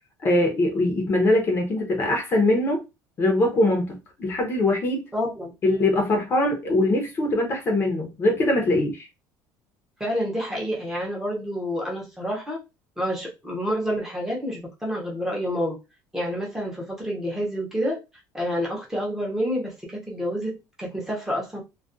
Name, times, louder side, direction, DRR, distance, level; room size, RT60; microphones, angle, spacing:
voice 1, 0.2-2.8 3.2-5.0 5.6-9.1, left 1 dB, 30° left, 0.7 m, -22 dB
voice 2, 5.1-5.5 10.0-12.6 13.0-15.8 16.1-18.0 18.3-21.6, equal, 5° right, 0.7 m, -28 dB
2.3 x 2.2 x 2.5 m
cardioid pair, 155°, 8 cm